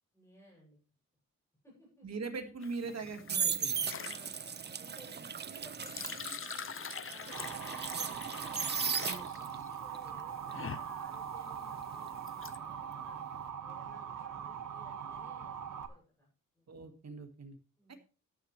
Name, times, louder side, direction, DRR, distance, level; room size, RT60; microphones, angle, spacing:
voice 1, 0.1-0.8 1.6-2.1 4.0-4.5 4.8-6.7 7.0-13.2 13.6-16.3 16.5-16.7 17.8-18.0, left 1 dB, 10° left, -3 dB, 7.8 m, -59 dB
voice 2, 2.0-3.8 9.0-9.2 16.7-17.6 17.9-18.0, right 4 dB, 55° right, 7 dB, 1.9 m, -41 dB
sound 1, 2.6-12.6, left 8 dB, 40° left, 0.5 m, -45 dB
sound 2, 2.9-9.6 9.9-12.8 13.1-13.4, right 7 dB, 35° right, 0.5 m, -37 dB
Motor vehicle (road) / Siren, 7.3-15.9, right 8 dB, 75° right, 1.6 m, -42 dB
13.5 x 10.5 x 3.3 m, 0.36 s
wide cardioid pair, 170°, 32 cm